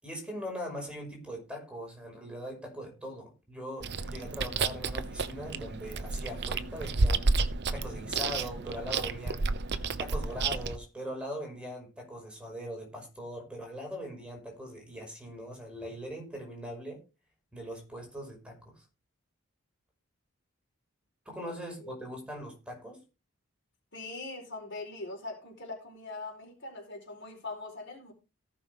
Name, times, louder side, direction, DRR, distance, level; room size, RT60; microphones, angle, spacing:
voice 1, 0.0-7.3 7.7-9.5 10.0-17.0 17.5-18.8 21.3-23.0, equal, 5° right, 2 dB, 5.6 m, -41 dB
Chewing mastication, 3.8-10.8, right 3 dB, 55° right, 0.9 m, -31 dB
voice 2, 23.9-28.1, left 3 dB, 60° left, 3 dB, 4.4 m, -41 dB
18.0 x 6.2 x 3.6 m, 0.30 s
head